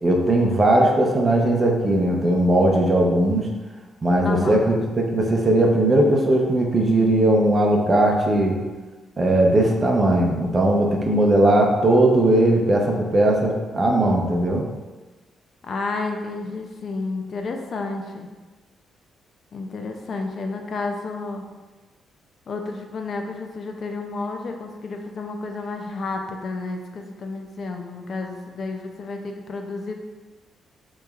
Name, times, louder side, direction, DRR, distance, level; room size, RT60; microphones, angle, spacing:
voice 1, 0.0-3.5 4.0-8.6 9.2-14.7, right 1 dB, 25° right, 0 dB, 0.6 m, -18 dB
voice 2, 4.2-4.6 15.6-18.3 19.5-21.4 22.5-29.9, left 3 dB, 45° left, 3 dB, 0.4 m, -31 dB
6.6 x 3.1 x 2.4 m, 1.3 s
cardioid pair, 135°, 0 cm